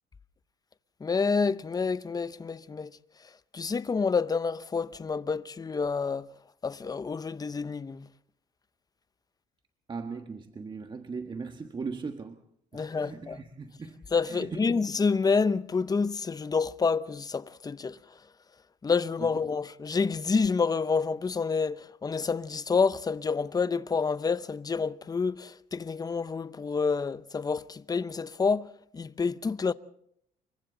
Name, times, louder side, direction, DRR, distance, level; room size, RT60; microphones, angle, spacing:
voice 1, 1.0-2.9 3.5-6.3 6.6-8.0 12.7-13.4 14.1-18.0 18.8-28.7 28.9-29.7, left 5 dB, 20° left, 0.8 m, -28 dB
voice 2, 9.9-12.4 12.7-14.9 19.2-19.4, right 4 dB, 25° right, 1.4 m, -39 dB
29.0 x 23.5 x 4.0 m
cardioid pair, 110°, 17 cm